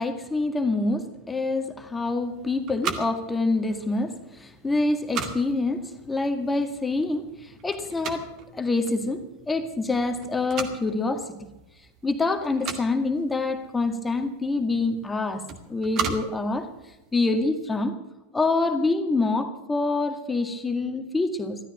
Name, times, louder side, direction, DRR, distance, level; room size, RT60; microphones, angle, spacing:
voice 1, 0.0-11.5 12.0-16.7 17.1-17.9 18.3-21.6, left 3 dB, 10° left, 7 dB, 1.9 m, -26 dB
sound 1, 2.2-17.5, right 6 dB, 35° right, 2.2 m, -38 dB
16.0 x 13.5 x 6.2 m, 0.98 s
figure-of-eight pair, 90°, 0 cm